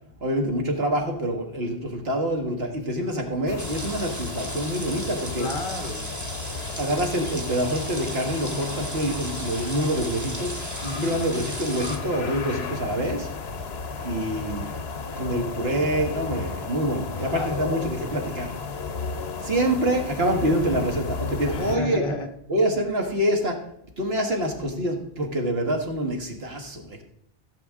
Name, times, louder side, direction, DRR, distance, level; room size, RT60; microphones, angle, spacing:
voice 1, 0.2-5.5 6.8-10.6 11.0-13.3 14.0-14.7 15.0-18.6 19.4-22.0 22.5-23.6 24.0-27.0, right 1 dB, 70° right, 3 dB, 1.9 m, -26 dB
sound 1, 3.5-21.8, left 4 dB, 75° left, 1.3 m, -34 dB
sound 2, 3.6-12.0, right 1 dB, 15° right, 1.1 m, -37 dB
voice 2, 5.4-6.1 10.8-11.1 17.1-17.8 21.4-22.3, left 2 dB, 55° left, 5 dB, 1.6 m, -32 dB
15.5 x 7.3 x 3.7 m, 0.71 s
omnidirectional pair, 1.1 m